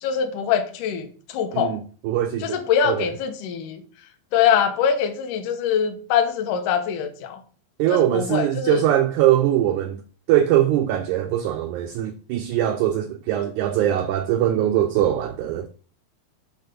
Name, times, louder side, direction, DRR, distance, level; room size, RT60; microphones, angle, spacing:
voice 1, 0.0-1.1 1.3-1.7 2.4-3.8 4.3-7.4 7.9-8.8, left 8 dB, 70° left, 2.2 m, -23 dB
voice 2, 1.5-3.1 7.8-10.0 10.3-15.7, right 12 dB, 85° right, 1.7 m, -22 dB
8.2 x 3.7 x 6.6 m
omnidirectional pair, 4.1 m